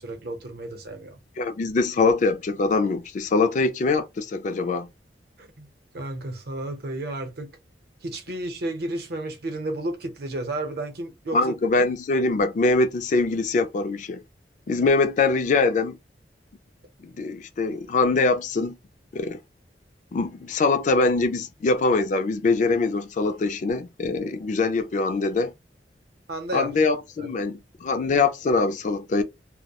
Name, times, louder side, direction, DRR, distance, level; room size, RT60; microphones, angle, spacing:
voice 1, 0.0-1.2 5.4-5.7 5.9-7.5 8.0-11.5 26.3-26.7 27.2-27.3, right 2 dB, 65° right, 0.7 m, -32 dB
voice 2, 1.4-4.9 11.3-14.2 14.7-16.0 17.0-18.8 19.1-19.4 20.1-25.5 26.5-29.2, left 3 dB, 45° left, 0.3 m, -23 dB
2.2 x 2.1 x 2.8 m
head